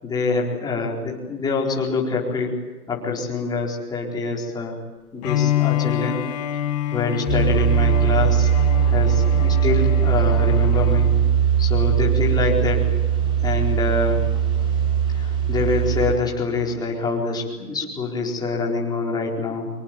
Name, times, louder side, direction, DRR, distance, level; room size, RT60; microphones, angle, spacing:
voice 1, 0.0-2.5 2.9-4.7 5.1-6.2 6.9-8.5 8.8-11.1 11.6-12.9 13.4-14.2 15.1-19.7, left 4 dB, 10° left, -2 dB, 4.4 m, -25 dB
Bowed string instrument, 5.2-11.2, left 12 dB, 25° left, 2.1 m, -27 dB
sound 1, 7.3-16.1, right 8 dB, 10° right, 4.4 m, -20 dB
25.0 x 22.5 x 9.2 m, 1.3 s
hypercardioid pair, 155°, 46 cm